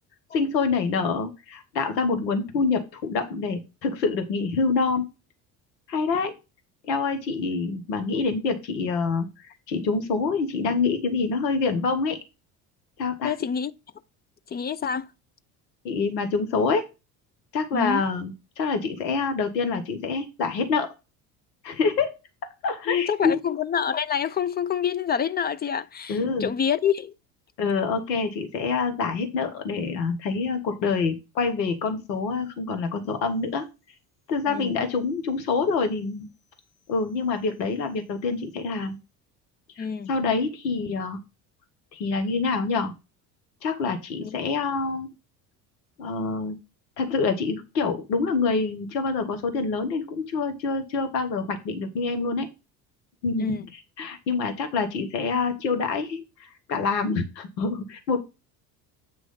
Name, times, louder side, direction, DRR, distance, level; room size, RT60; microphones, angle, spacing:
voice 1, 0.3-5.1 5.9-6.3 6.9-9.3 9.7-12.2 13.0-13.3 15.8-16.8 17.5-20.9 21.6-22.1 22.6-23.4 26.1-26.5 27.6-33.7 34.3-36.3 36.9-39.0 39.8-41.2 41.9-42.9 43.6-45.1 46.0-46.6 47.0-52.5 53.2-58.2, left 4 dB, 80° left, 1.2 m, -26 dB
voice 2, 13.2-13.7 14.5-15.1 17.7-18.0 22.9-27.1 34.5-34.8 39.8-40.1 44.2-44.3 53.4-53.7, left 8 dB, 20° left, 0.4 m, -27 dB
8.2 x 3.1 x 5.5 m
hypercardioid pair, 60°, 49 cm